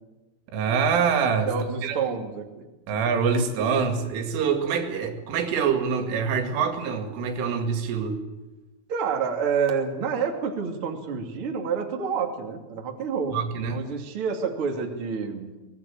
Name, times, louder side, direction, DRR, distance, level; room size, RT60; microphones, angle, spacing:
voice 1, 0.5-1.5 1.8-2.0 2.9-8.2 13.3-13.8, right 6 dB, 80° right, 5 dB, 4.7 m, -25 dB
voice 2, 1.5-2.6 8.9-15.5, right 6 dB, 35° right, 2 dB, 2.7 m, -28 dB
23.5 x 19.5 x 8.6 m, 1.1 s
omnidirectional pair, 5.7 m